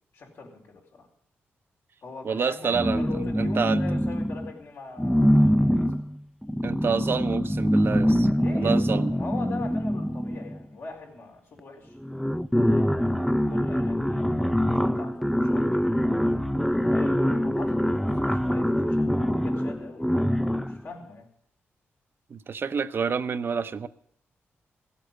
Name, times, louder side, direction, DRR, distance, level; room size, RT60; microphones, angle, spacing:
voice 1, 0.1-1.1 2.0-5.9 8.3-12.0 12.5-12.9 13.5-16.1 16.8-20.3 20.7-21.3, left 4 dB, 75° left, 4.4 m, -42 dB
voice 2, 2.2-3.0 3.4-3.8 6.6-8.3 8.5-9.1 22.3-23.9, right 6 dB, 55° right, 0.7 m, -28 dB
sound 1, 2.7-4.5 5.0-10.7 11.6-11.7 12.0-20.8, equal, 5° left, 0.5 m, -24 dB
16.0 x 8.3 x 7.9 m
cardioid pair, 80°, 5 cm